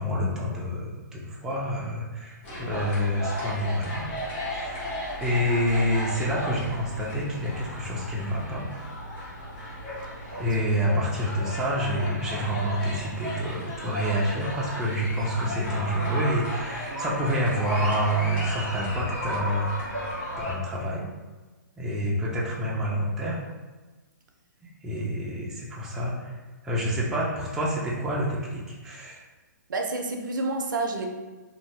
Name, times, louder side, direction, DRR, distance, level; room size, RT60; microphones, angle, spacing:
voice 1, 0.0-4.1 4.5-4.9 5.2-8.6 10.4-19.7 20.4-21.0 21.8-23.4 24.8-26.4 26.6-29.2, equal, 5° right, -5 dB, 0.3 m, -28 dB
sound 1, 2.4-20.5, equal, 30° left, 1.0 m, -35 dB
voice 2, 29.7-31.1, right 2 dB, 80° right, 3 dB, 0.5 m, -30 dB
2.6 x 2.2 x 3.0 m, 1.2 s
hypercardioid pair, 155°, 10 cm